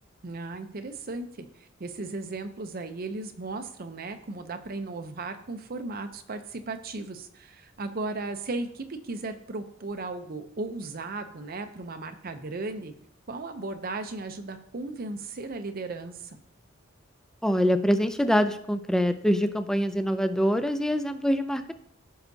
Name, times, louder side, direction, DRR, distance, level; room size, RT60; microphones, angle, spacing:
voice 1, 0.2-12.9 13.3-16.4, right 3 dB, 50° right, 7 dB, 0.6 m, -36 dB
voice 2, 17.4-21.7, equal, 5° left, 9 dB, 0.4 m, -24 dB
15.0 x 5.6 x 2.7 m, 0.69 s
head